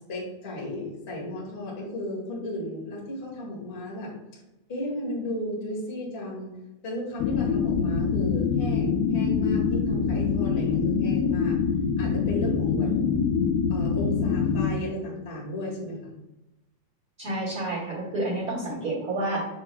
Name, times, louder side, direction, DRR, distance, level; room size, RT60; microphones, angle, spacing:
voice 1, 0.1-4.1 4.7-6.5 6.8-11.6 12.0-12.9 13.7-16.1, left 1 dB, 45° left, -4 dB, 0.7 m, -34 dB
sound 1, 7.2-14.7, left 6 dB, 90° left, 2.5 m, -24 dB
voice 2, 12.8-13.2 17.2-19.5, right 1 dB, 40° right, -9 dB, 1.4 m, -30 dB
7.0 x 6.2 x 2.2 m, 0.97 s
omnidirectional pair, 4.4 m